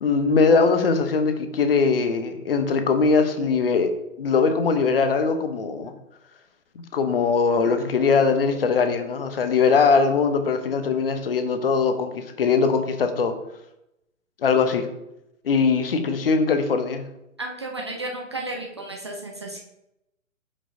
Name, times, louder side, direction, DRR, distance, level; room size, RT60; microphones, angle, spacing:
voice 1, 0.0-3.9 4.2-5.9 6.9-13.4 14.4-14.9 15.4-17.0, left 5 dB, 45° left, 8 dB, 0.8 m, -21 dB
voice 2, 17.4-19.6, right 2 dB, 20° right, 0 dB, 0.4 m, -33 dB
8.4 x 5.3 x 2.6 m, 0.87 s
figure-of-eight pair, 125°, 40 cm